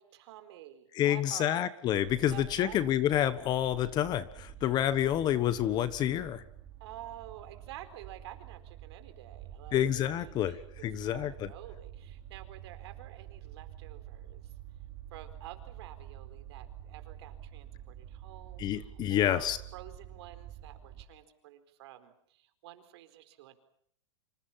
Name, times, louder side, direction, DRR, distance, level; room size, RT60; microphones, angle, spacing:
voice 1, 0.0-1.7 2.3-2.8 4.6-4.8 6.8-14.5 15.1-23.6, right 13 dB, 55° right, 9 dB, 4.4 m, -50 dB
voice 2, 0.9-6.4 9.7-10.6 10.8-11.5 18.6-19.6, left 11 dB, 25° left, 15 dB, 1.3 m, -28 dB
sound 1, 1.8-21.0, right 11 dB, 25° right, 5.0 m, -48 dB
28.5 x 26.5 x 5.8 m, 0.66 s
supercardioid pair, 150°, 16 cm